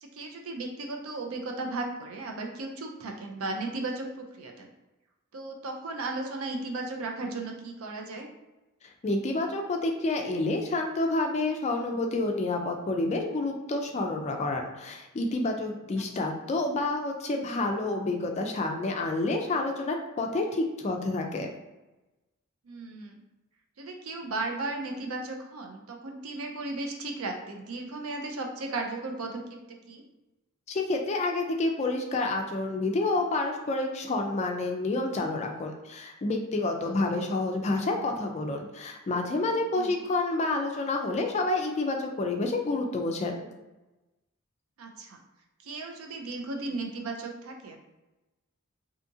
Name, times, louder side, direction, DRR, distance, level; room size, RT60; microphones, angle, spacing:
voice 1, 0.0-4.7 5.3-8.3 16.2-16.3 22.6-23.1 23.8-29.4 29.9-30.0 36.9-37.0 39.8-40.0 44.8-45.2 45.6-47.8, right 2 dB, 75° right, 2 dB, 0.5 m, -35 dB
voice 2, 9.0-21.5 30.7-43.5, left 2 dB, 30° left, 3 dB, 0.3 m, -29 dB
2.7 x 2.4 x 2.6 m, 1.0 s
head